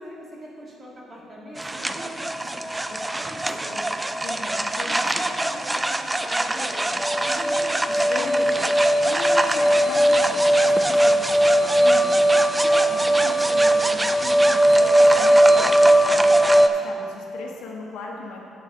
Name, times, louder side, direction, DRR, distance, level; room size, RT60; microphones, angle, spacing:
voice 1, 0.0-3.9 4.8-8.1 16.0-16.8, right 1 dB, 40° right, -4 dB, 2.1 m, -42 dB
sound 1, 1.6-16.7, right 1 dB, 15° right, 0.4 m, -19 dB
voice 2, 4.2-5.2 8.1-12.1 12.5-18.4, left 3 dB, 85° left, -2 dB, 1.4 m, -37 dB
11.0 x 8.2 x 2.8 m, 2.5 s
cardioid pair, 90°, 0 cm